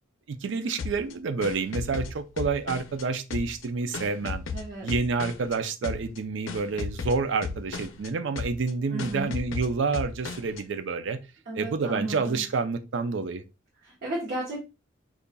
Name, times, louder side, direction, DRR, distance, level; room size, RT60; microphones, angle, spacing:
voice 1, 0.3-4.4 4.8-11.2 11.6-13.4, right 4 dB, 70° right, 0.4 m, -29 dB
sound 1, 0.8-3.0 3.3-5.6 5.8-6.2 6.5-8.1 8.4-8.7 9.0-10.6, left 4 dB, 90° left, 0.5 m, -35 dB
voice 2, 4.5-4.9 8.9-9.4 11.5-12.4 13.8-14.6, right 1 dB, 50° right, 1.1 m, -34 dB
5.2 x 2.4 x 2.2 m
head